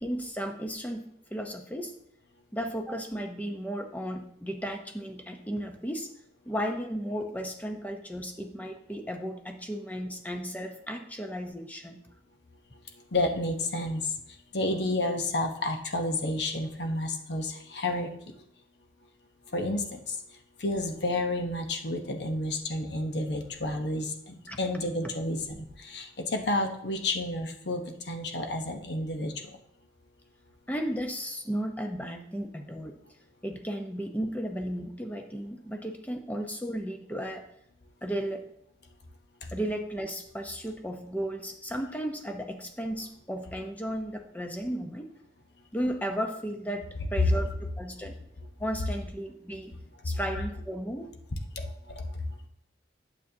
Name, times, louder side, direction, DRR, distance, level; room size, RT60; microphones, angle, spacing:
voice 1, 0.0-1.0 1.3-1.9 2.5-6.1 6.5-12.0 24.5-24.6 30.7-33.0 33.4-37.4 38.0-38.4 39.5-45.1 45.7-48.2 48.6-49.7 50.0-51.1, equal, 10° left, 4 dB, 0.7 m, -34 dB
voice 2, 13.1-14.0 14.5-18.1 19.5-19.8 20.6-25.4 25.9-27.8 28.1-29.3 51.6-51.7, left 1 dB, 65° left, 4 dB, 1.0 m, -30 dB
9.1 x 7.2 x 2.8 m, 0.70 s
head